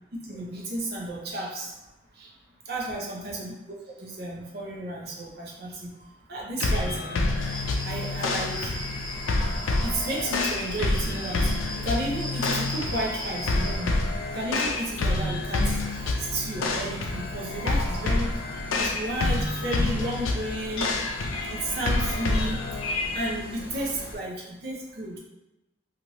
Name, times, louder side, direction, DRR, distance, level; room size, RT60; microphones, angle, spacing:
voice 1, 0.1-1.7 2.2-2.3 2.7-3.5 4.0-5.9 6.3-7.3 7.8-8.7 9.8-11.5 11.8-13.9 14.3-15.6 16.2-18.3 18.8-20.9 21.5-22.6 23.1-25.2, right 1 dB, 50° right, -3 dB, 0.7 m, -32 dB
sound 1, 6.6-23.3, left 2 dB, 85° left, 0.4 m, -28 dB
sound 2, 7.3-24.2, equal, 60° left, 1.1 m, -41 dB
sound 3, 7.4-13.8, equal, ahead, 0.7 m, -38 dB
3.0 x 2.5 x 2.9 m, 0.96 s
head